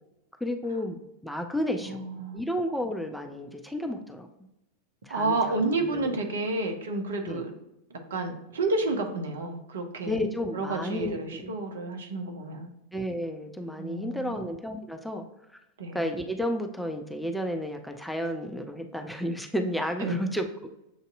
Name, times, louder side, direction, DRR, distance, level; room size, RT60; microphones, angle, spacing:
voice 1, 0.4-2.0 2.3-4.3 5.0-6.2 7.3-7.4 10.0-11.6 12.9-15.2 15.9-20.7, equal, ahead, 4 dB, 0.4 m, -32 dB
voice 2, 1.9-2.4 5.1-7.5 7.9-12.7 13.8-14.5 15.8-16.0 20.0-20.1, right 3 dB, 65° right, 4 dB, 0.7 m, -30 dB
7.1 x 2.6 x 2.5 m, 0.90 s
figure-of-eight pair, 90°, 0 cm